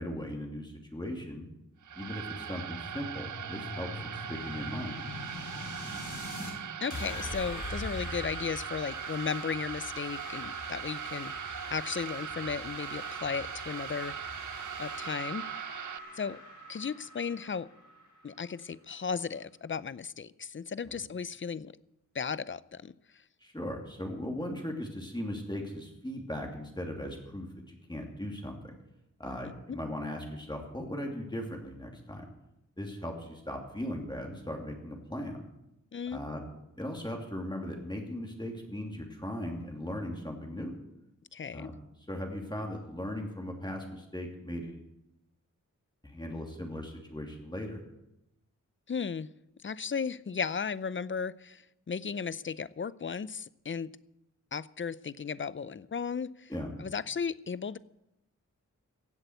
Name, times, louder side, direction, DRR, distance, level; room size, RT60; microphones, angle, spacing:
voice 1, 0.0-1.5 1.9-5.0 20.9-21.0 23.4-28.8 29.2-32.3 32.8-35.4 36.1-36.4 36.8-40.8 41.5-41.7 42.1-44.8 46.0-47.8 56.5-56.7, left 1 dB, 15° left, 1 dB, 2.8 m, -38 dB
sound 1, 1.8-16.0, right 9 dB, 65° right, 0.6 m, -41 dB
sound 2, 1.9-6.5 6.9-18.5, equal, 65° left, 4.7 m, -42 dB
voice 2, 6.8-14.5 14.8-15.4 16.1-16.4 16.7-17.7 18.2-21.7 22.1-22.9 29.7-29.8 35.9-36.2 41.3-41.7 48.9-49.3 49.6-53.9 54.5-56.5 56.8-57.8, left 6 dB, 40° left, 18 dB, 0.5 m, -35 dB
16.0 x 8.0 x 8.0 m, 0.87 s
wide cardioid pair, 75°, 33 cm